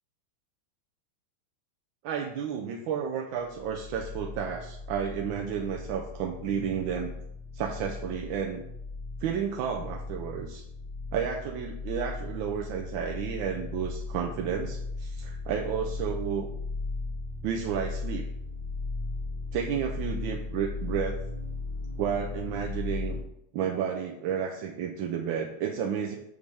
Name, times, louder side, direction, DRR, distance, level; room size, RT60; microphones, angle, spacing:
voice 1, 2.0-7.1 7.5-8.6 9.2-10.6 11.1-16.5 17.4-18.2 19.5-21.2 22.0-23.2 23.5-26.2, right 7 dB, 75° right, 1 dB, 1.3 m, -31 dB
sound 1, 3.4-23.2, left 3 dB, 30° left, 1.9 m, -37 dB
6.2 x 5.3 x 3.4 m, 0.77 s
omnidirectional pair, 2.4 m